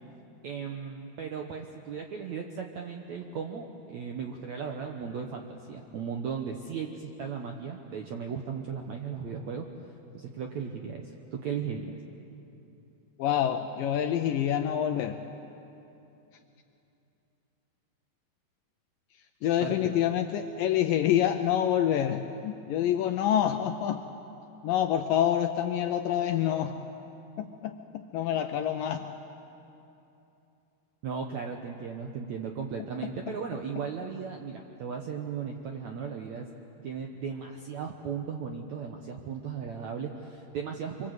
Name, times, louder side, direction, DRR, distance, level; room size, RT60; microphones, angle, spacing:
voice 1, 0.4-9.7 10.1-12.0 19.6-19.9 31.0-36.5 36.8-41.1, right 6 dB, 75° right, 3 dB, 1.7 m, -36 dB
voice 2, 13.2-15.2 19.4-24.1 24.6-26.8 27.4-29.1 33.0-33.4, left 10 dB, 80° left, 7 dB, 2.0 m, -27 dB
25.5 x 24.5 x 8.0 m, 2.9 s
omnidirectional pair, 4.7 m